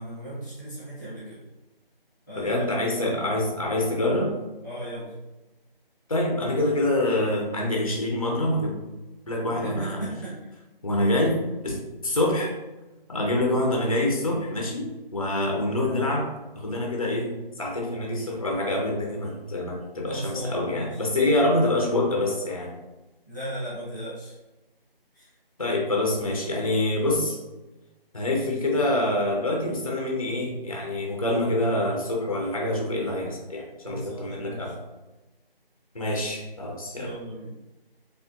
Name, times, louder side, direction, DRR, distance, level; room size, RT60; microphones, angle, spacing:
voice 1, 0.0-1.4 2.3-2.6 3.0-3.2 4.6-5.1 9.5-10.5 20.0-21.0 23.2-24.3 25.1-25.3 33.8-34.7 36.9-37.5, right 1 dB, ahead, -12 dB, 1.1 m, -36 dB
voice 2, 2.4-4.3 6.1-8.7 9.3-10.0 10.8-12.5 13.1-16.3 16.5-17.3 17.6-22.7 25.6-27.4 28.1-34.7 35.9-37.1, left 1 dB, 35° left, -1 dB, 0.7 m, -26 dB
4.4 x 3.3 x 2.5 m, 1.1 s
figure-of-eight pair, 165°, 30 cm